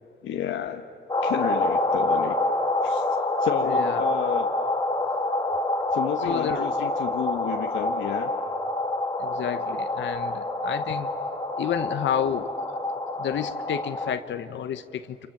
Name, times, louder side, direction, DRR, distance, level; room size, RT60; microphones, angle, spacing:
voice 1, 0.2-0.8 1.2-2.4 2.8-3.1 3.4-4.5 5.9-8.3, left 10 dB, 90° left, 3 dB, 1.1 m, -31 dB
sound 1, 1.1-14.1, left 2 dB, 20° left, 2.6 m, -27 dB
voice 2, 3.6-4.0 6.2-6.7 9.2-11.1 11.6-12.5 13.2-15.3, left 9 dB, 70° left, 9 dB, 1.1 m, -30 dB
29.5 x 27.5 x 7.4 m, 2.6 s
cardioid pair, 90°, 20 cm